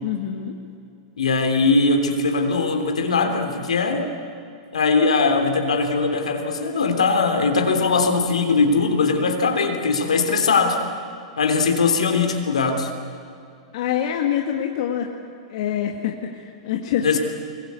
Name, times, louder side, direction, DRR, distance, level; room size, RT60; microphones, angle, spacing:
voice 1, 0.0-0.6 13.7-15.1 15.5-17.2, left 9 dB, 65° left, 3 dB, 1.9 m, -25 dB
voice 2, 1.2-4.1 4.7-10.8 11.4-12.9 17.0-17.2, left 4 dB, 85° left, 4 dB, 3.4 m, -20 dB
25.0 x 22.0 x 8.3 m, 2.5 s
hypercardioid pair, 110°, 3 cm